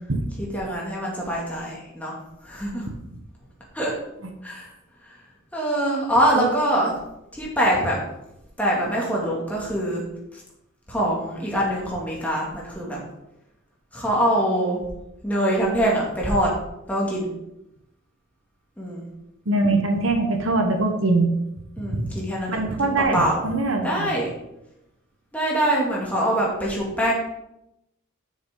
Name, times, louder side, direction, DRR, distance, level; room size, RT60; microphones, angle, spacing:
voice 1, 0.4-2.2 2.4-2.9 3.7-3.9 4.4-4.7 5.5-6.9 7.3-8.0 8.6-10.0 10.3-10.4 10.9-13.0 13.9-14.8 15.2-16.5 16.9-17.3 18.8-19.0 21.8-23.4 23.8-24.3 25.3-27.1, right 1 dB, 5° left, -4 dB, 2.3 m, -24 dB
voice 2, 19.5-21.3 21.9-22.1 22.5-24.1, right 2 dB, 65° right, 4 dB, 1.1 m, -22 dB
9.6 x 6.6 x 3.8 m, 0.86 s
head